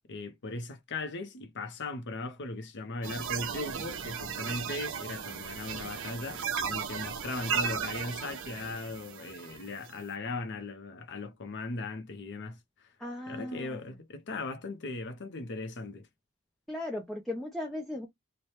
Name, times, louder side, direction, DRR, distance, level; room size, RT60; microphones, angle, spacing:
voice 1, 0.1-6.4 6.7-12.9 13.3-16.1, left 3 dB, 55° left, 0.7 m, -38 dB
sound 1, 3.0-10.0, right 6 dB, 60° right, 0.7 m, -36 dB
voice 2, 13.0-13.8 16.7-18.1, left 1 dB, ahead, 0.5 m, -37 dB
3.2 x 2.2 x 4.2 m
head